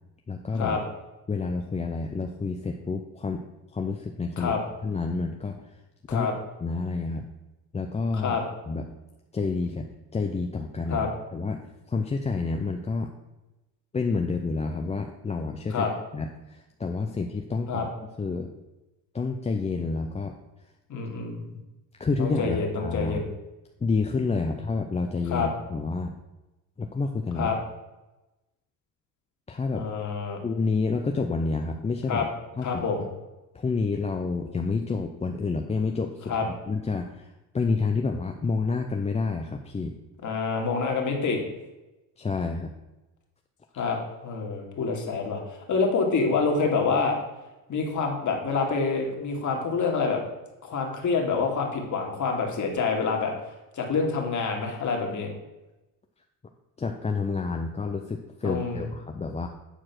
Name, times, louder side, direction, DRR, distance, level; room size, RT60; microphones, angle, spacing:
voice 1, 0.3-0.8 1.3-3.4 3.7-4.5 4.8-5.6 6.1-6.3 6.6-7.3 7.7-8.4 8.7-8.9 9.3-9.9 10.1-13.1 13.9-17.9 18.2-18.5 19.1-20.3 22.0-23.3 23.8-26.1 26.8-27.5 29.5-29.8 30.4-32.3 32.6-32.8 33.5-36.3 36.7-37.3 37.5-39.9 42.2-42.7 56.8-59.5, left 4 dB, 15° left, 3 dB, 0.5 m, -29 dB
voice 2, 20.9-21.6 22.2-23.3 25.3-25.5 27.4-27.6 29.7-30.4 32.1-32.3 32.6-33.1 36.3-36.5 40.2-41.4 43.8-47.2 47.7-50.2 50.6-53.3 53.7-55.3 58.4-58.9, left 4 dB, 40° left, 1 dB, 2.1 m, -27 dB
8.9 x 4.7 x 5.9 m, 1.0 s
cardioid pair, 110°, 44 cm